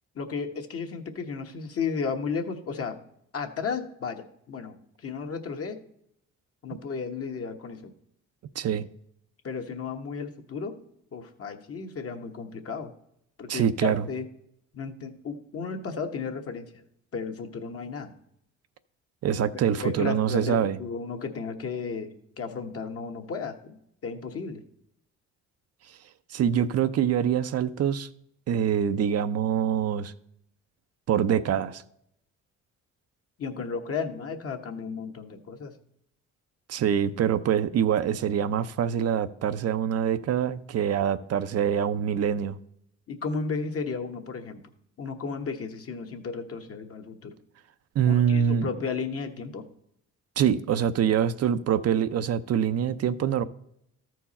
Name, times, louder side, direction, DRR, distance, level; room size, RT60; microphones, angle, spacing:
voice 1, 0.1-3.0 3.3-5.8 6.6-7.9 9.4-10.7 11.1-12.9 13.4-14.2 14.7-16.6 17.1-18.1 19.8-22.1 22.4-23.8 24.0-24.6 33.4-35.7 43.1-44.6 45.0-47.3 48.1-49.6, left 5 dB, 50° left, 1.2 m, -34 dB
voice 2, 8.6-8.9 13.5-14.0 19.2-20.8 26.3-28.1 28.5-30.1 31.1-31.8 36.7-42.6 48.0-48.7 50.4-53.4, right 8 dB, 55° right, 0.5 m, -25 dB
13.5 x 4.6 x 4.2 m
cardioid pair, 90°, 30 cm